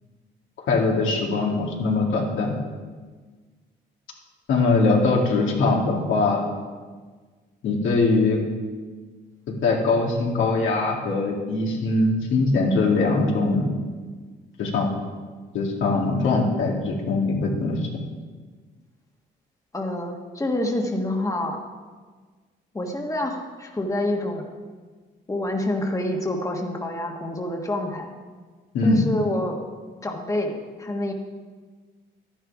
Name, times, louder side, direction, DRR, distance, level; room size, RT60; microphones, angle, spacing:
voice 1, 0.7-2.5 4.5-6.4 7.6-8.4 9.6-13.7 14.6-14.9 15.5-17.9 28.7-29.0, left 3 dB, 80° left, -1 dB, 2.4 m, -22 dB
voice 2, 19.7-21.6 22.7-24.5 25.3-28.1 28.8-29.6 30.0-31.1, left 1 dB, 15° left, 1 dB, 1.5 m, -27 dB
11.5 x 10.5 x 4.9 m, 1.4 s
cardioid pair, 90°, 20 cm